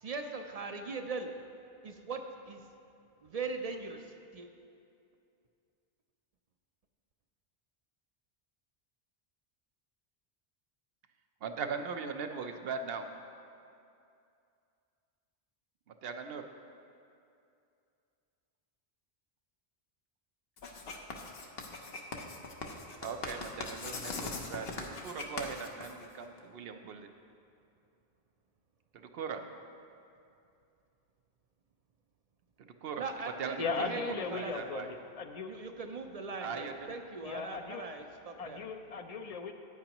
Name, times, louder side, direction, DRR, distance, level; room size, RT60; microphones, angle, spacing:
voice 1, 0.0-1.3 1.8-2.6 3.2-4.5 33.0-34.5 35.4-38.6, right 4 dB, 45° right, 5 dB, 0.5 m, -40 dB
voice 2, 11.4-13.1 15.9-16.5 23.0-27.1 28.9-29.4 32.6-34.9 36.4-36.9, right 5 dB, 75° right, 6 dB, 0.9 m, -40 dB
Writing, 20.6-26.4, left 3 dB, 70° left, 1.1 m, -41 dB
voice 3, 33.6-35.5 37.2-37.9 38.4-39.5, left 4 dB, 45° left, 6 dB, 0.6 m, -37 dB
14.0 x 9.3 x 3.0 m, 2.5 s
omnidirectional pair, 1.0 m